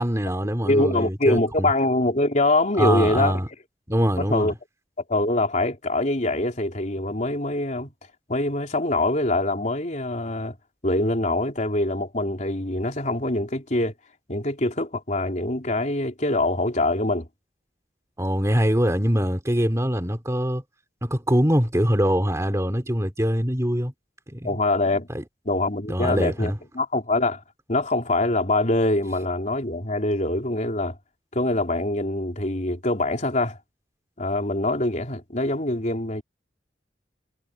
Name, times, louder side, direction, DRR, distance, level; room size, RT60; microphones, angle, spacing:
voice 1, 0.0-1.7 2.8-3.5 3.9-4.5 18.2-20.6 21.0-23.9 24.3-24.6 25.1-25.2 25.9-26.6, equal, 15° right, 2.8 m, -23 dB
voice 2, 0.6-3.4 4.2-4.5 5.1-7.9 8.3-10.6 10.8-13.9 14.3-17.3 24.4-25.1 25.5-27.4 27.7-31.0 31.3-33.6 34.2-36.2, left 2 dB, 45° left, 3.8 m, -24 dB
head